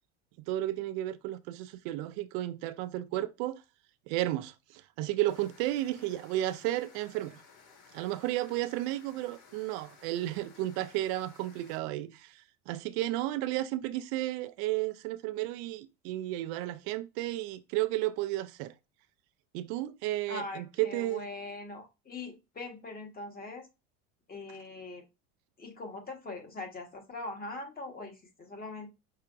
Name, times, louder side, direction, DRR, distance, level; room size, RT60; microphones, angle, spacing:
voice 1, 0.4-3.6 4.1-7.4 7.9-18.7 19.5-21.3, right 15 dB, 65° right, 0.5 m, -33 dB
sound 1, 5.3-11.8, left 5 dB, 65° left, 2.1 m, -57 dB
voice 2, 20.3-23.7 24.3-25.0 25.6-28.9, left 2 dB, 25° left, 1.4 m, -42 dB
5.6 x 3.6 x 2.5 m
supercardioid pair, 110°, 35 cm